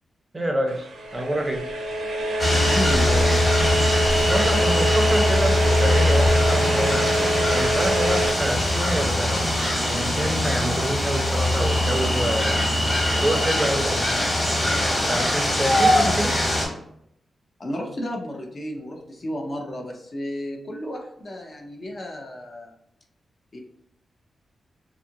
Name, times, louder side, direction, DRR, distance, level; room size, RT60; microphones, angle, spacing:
voice 1, 0.3-1.6 4.3-9.4 9.8-12.5 13.1-14.2 14.9-16.3, right 1 dB, 20° right, 2 dB, 0.5 m, -27 dB
sound 1, 0.7-8.3, right 1 dB, 75° right, 0.5 m, -25 dB
sound 2, 2.4-16.7, left 1 dB, 20° left, 1.1 m, -22 dB
voice 2, 2.7-3.4 17.6-22.7 23.5-23.6, equal, 40° left, 1 dB, 0.6 m, -32 dB
2.8 x 2.4 x 2.7 m, 0.73 s
wide cardioid pair, 105°, 0 cm